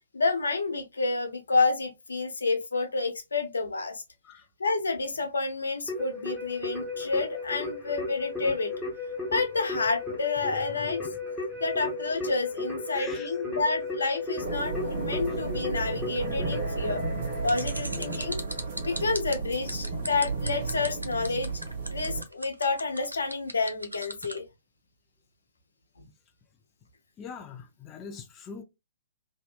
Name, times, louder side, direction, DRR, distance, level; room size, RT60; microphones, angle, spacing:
voice 1, 0.1-4.0 4.6-8.7 9.3-11.0 11.6-17.0 17.4-18.4 18.8-21.5 21.9-24.4, left 3 dB, 70° left, 0.6 m, -29 dB
Keyboard (musical), 5.9-18.3, left 3 dB, ahead, 0.9 m, -35 dB
voice 2, 10.4-11.0 11.5-11.6 12.9-13.4 27.2-28.6, left 6 dB, 20° left, 0.3 m, -43 dB
sound 1, 14.4-22.2, right 4 dB, 45° right, 1.0 m, -33 dB
sound 2, 17.5-24.4, right 1 dB, 85° right, 0.5 m, -37 dB
2.7 x 2.1 x 2.3 m
figure-of-eight pair, 120°, 0 cm